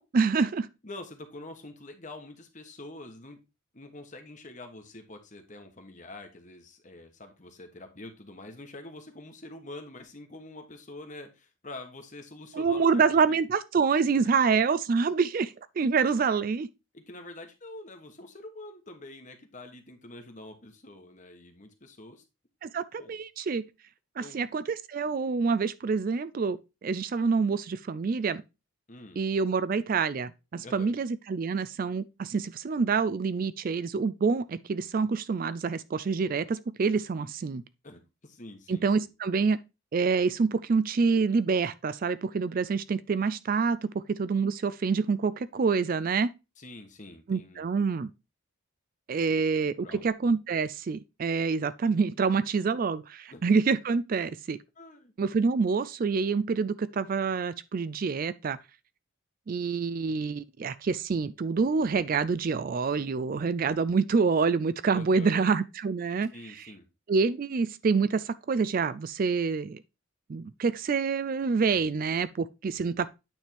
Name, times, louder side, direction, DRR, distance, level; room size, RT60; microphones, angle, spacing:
voice 1, 0.0-0.7 12.5-16.7 22.6-23.7 24.2-28.4 29.2-37.6 38.7-39.6 39.9-46.3 47.3-48.1 49.1-54.6 55.2-58.6 59.5-66.7 67.1-69.8 70.3-73.1, right 5 dB, 45° right, 0.3 m, -27 dB
voice 2, 0.8-3.4 3.7-13.4 14.2-14.3 16.9-22.2 23.0-23.1 24.2-24.5 28.9-29.2 30.6-30.9 37.8-39.1 46.6-47.7 49.3-49.4 49.8-50.0 53.3-53.4 54.8-55.1 64.9-65.5 66.3-66.9, left 2 dB, 35° left, 1.2 m, -46 dB
9.0 x 3.5 x 4.4 m
head